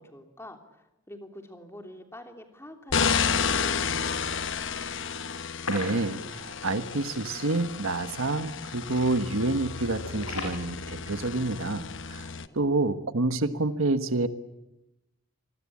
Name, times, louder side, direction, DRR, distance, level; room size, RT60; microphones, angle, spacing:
voice 1, 0.0-4.2 12.4-12.6, left 1 dB, 10° left, 5 dB, 3.1 m, -47 dB
sound 1, 2.9-12.5, left 6 dB, 60° left, 1.1 m, -31 dB
sound 2, 5.4-6.6 6.9-7.0 7.4-7.5 8.1-8.3 8.6-9.0 9.3-10.6, left 3 dB, 80° left, 6.3 m, -37 dB
voice 2, 5.7-12.3 12.5-14.3, right 2 dB, 70° right, 11 dB, 1.4 m, -28 dB
27.5 x 20.5 x 8.6 m, 0.93 s
head